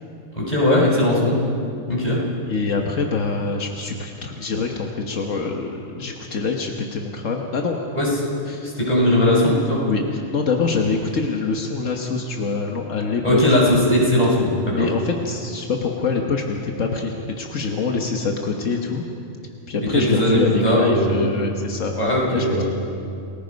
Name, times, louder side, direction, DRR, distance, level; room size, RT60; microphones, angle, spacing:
voice 1, 0.4-1.3 1.9-2.2 7.9-8.1 8.6-9.8 13.2-14.9 19.9-21.3 22.0-22.6, left 1 dB, 35° left, -4 dB, 5.5 m, -18 dB
voice 2, 2.5-7.8 8.5-8.7 9.9-13.6 14.7-19.0 19.7-22.6, left 4 dB, 85° left, 2 dB, 1.6 m, -25 dB
29.0 x 19.0 x 5.2 m, 2.6 s
omnidirectional pair, 1.3 m